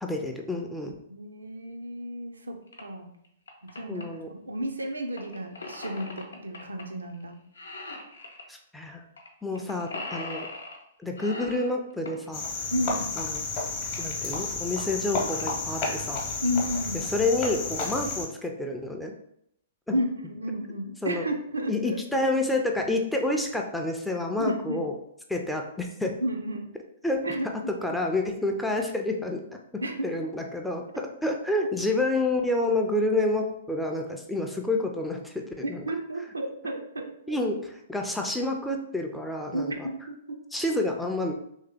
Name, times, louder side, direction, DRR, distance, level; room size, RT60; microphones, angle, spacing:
voice 1, 0.0-0.9 3.9-4.3 8.5-9.0 9.4-10.5 11.0-12.4 13.2-13.4 14.0-16.2 17.1-19.1 19.9-20.0 21.0-21.2 21.7-24.9 25.3-26.1 27.0-27.2 27.7-29.4 30.0-30.8 31.2-35.8 37.3-39.9 40.5-41.3, left 2 dB, 5° left, 2 dB, 0.4 m, -28 dB
voice 2, 1.1-3.1 3.6-7.4 9.5-9.6 12.7-13.1 16.4-17.0 19.9-22.3 24.4-24.9 26.2-26.7 27.2-27.7 29.8-30.1 35.6-37.4 39.5-40.4, equal, 75° right, 4 dB, 0.5 m, -32 dB
sound 1, 2.7-2.8 3.2-4.0 5.2-6.8 7.1-7.3 7.5-8.5 9.2-9.3 9.5-10.8 11.2-12.3 13.9-14.0 14.6-14.7 14.9-15.0 15.3-15.6 16.1-16.5, left 2 dB, 70° left, 0.7 m, -39 dB
Cricket, 12.3-18.3, left 3 dB, 35° left, 0.8 m, -31 dB
3.2 x 2.8 x 3.4 m, 0.75 s
figure-of-eight pair, 110°, 0 cm